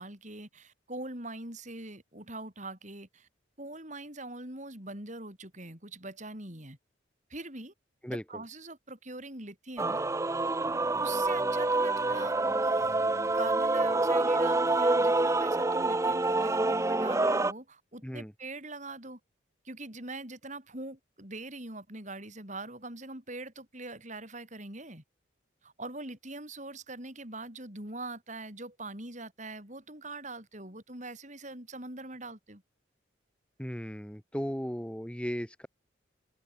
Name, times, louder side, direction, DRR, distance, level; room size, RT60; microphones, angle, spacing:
voice 1, 0.0-3.3 3.6-6.8 7.3-7.7 8.1-10.0 10.9-12.4 12.6-19.2 19.6-25.0 25.6-32.6, right 2 dB, 40° right, 6.9 m, -42 dB
voice 2, 8.0-8.4 18.0-18.3 33.6-35.7, equal, 5° left, 2.4 m, -36 dB
Male singing / Female singing / Musical instrument, 9.8-17.5, right 2 dB, 15° right, 0.5 m, -27 dB
head